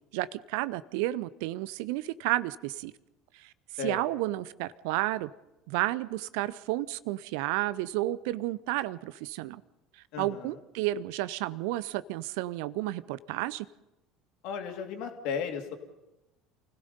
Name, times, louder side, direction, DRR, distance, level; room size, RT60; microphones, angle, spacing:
voice 1, 0.1-2.9 3.3-5.3 5.7-9.6 10.2-13.7, right 16 dB, 60° right, 19 dB, 0.7 m, -32 dB
voice 2, 10.1-10.5 14.4-15.8, left 6 dB, 55° left, 4 dB, 3.0 m, -35 dB
28.5 x 16.5 x 5.5 m, 0.95 s
figure-of-eight pair, 65°, 0 cm